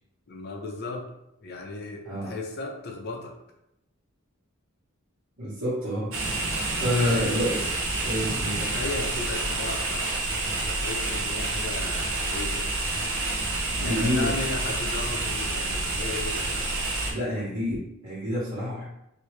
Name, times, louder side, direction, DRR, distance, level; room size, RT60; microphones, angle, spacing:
voice 1, 0.3-1.1 1.4-3.3 6.8-7.6 8.6-10.1 10.4-12.7 13.7-16.7, left 3 dB, 50° left, 1 dB, 0.6 m, -36 dB
voice 2, 5.4-6.1 6.8-7.6 8.0-8.6 13.8-14.3 17.1-18.8, equal, 90° right, -13 dB, 1.4 m, -28 dB
sound 1, 6.1-17.1, right 2 dB, 65° right, 0.7 m, -28 dB
3.0 x 2.7 x 3.2 m, 0.83 s
head